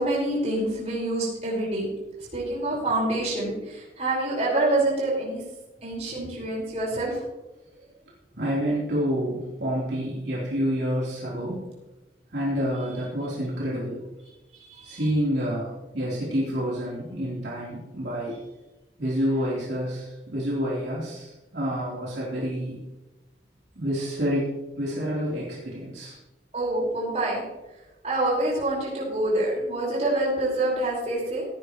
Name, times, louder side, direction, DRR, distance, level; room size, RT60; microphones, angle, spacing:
voice 1, 0.0-1.9 2.3-5.4 5.8-7.2 14.7-15.1 26.5-27.4 28.0-31.4, right 1 dB, 35° right, -5 dB, 5.0 m, -26 dB
voice 2, 8.4-11.8 12.3-14.0 14.8-18.4 19.0-22.8 23.8-26.2, equal, 75° right, -6 dB, 3.7 m, -28 dB
17.5 x 10.0 x 3.1 m, 1.0 s
head